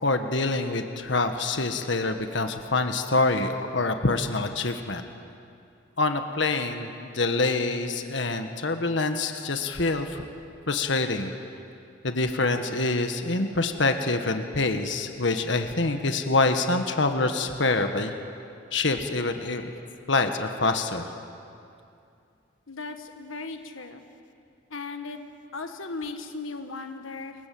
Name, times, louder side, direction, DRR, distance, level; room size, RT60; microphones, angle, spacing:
voice 1, 0.0-5.0 6.0-10.3 10.7-11.3 12.0-18.1 18.7-19.7 20.1-21.1, left 3 dB, 65° left, 6 dB, 1.6 m, -26 dB
voice 2, 22.7-24.0 24.7-25.2 25.5-27.5, left 3 dB, 90° left, 6 dB, 1.5 m, -37 dB
28.5 x 23.5 x 7.8 m, 2.5 s
head